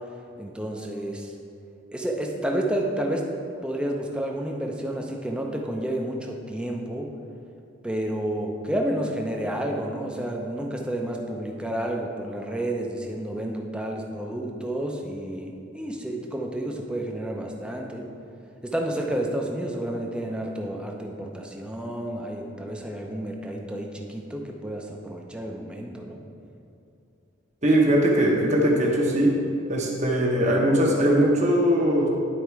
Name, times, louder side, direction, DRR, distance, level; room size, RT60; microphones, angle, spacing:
voice 1, 0.4-1.3 1.9-3.3 3.6-7.1 7.8-18.1 18.6-26.2, right 1 dB, 5° right, 1 dB, 0.6 m, -30 dB
voice 2, 27.6-29.3 29.7-32.1, right 1 dB, 40° right, -1 dB, 1.1 m, -20 dB
10.0 x 4.2 x 4.6 m, 2.6 s
head